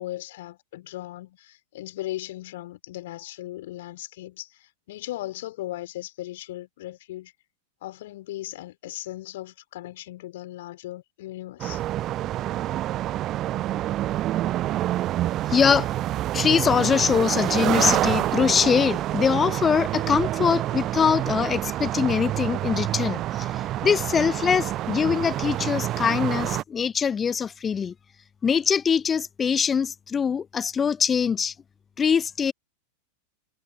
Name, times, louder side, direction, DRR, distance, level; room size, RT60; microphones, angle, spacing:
voice 1, 0.0-7.3 7.8-11.8, left 15 dB, 55° left, 4.8 m, -37 dB
sound 1, 11.6-26.6, right 14 dB, 35° right, 0.5 m, -27 dB
voice 2, 15.5-15.9 16.3-27.9 28.4-31.5 32.0-32.5, left 7 dB, 20° left, 0.9 m, -23 dB
figure-of-eight pair, 90°, 0 cm